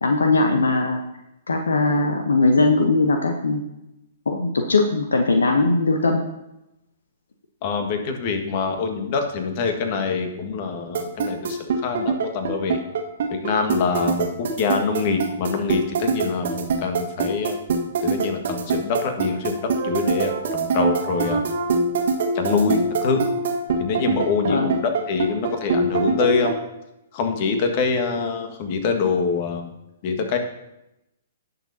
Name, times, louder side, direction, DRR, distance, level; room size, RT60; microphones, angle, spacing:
voice 1, 0.0-1.0 1.5-3.6 4.3-6.2 24.5-24.7, left 3 dB, 75° left, 4 dB, 0.9 m, -19 dB
voice 2, 7.6-12.8 13.3-17.6 18.0-21.5 22.3-23.2 23.8-26.6 27.1-29.7 30.0-30.4, left 5 dB, 45° left, 5 dB, 1.6 m, -25 dB
sound 1, 10.9-26.5, right 4 dB, 60° right, 1.5 m, -23 dB
18.5 x 6.9 x 2.8 m, 0.88 s
figure-of-eight pair, 120°, 0 cm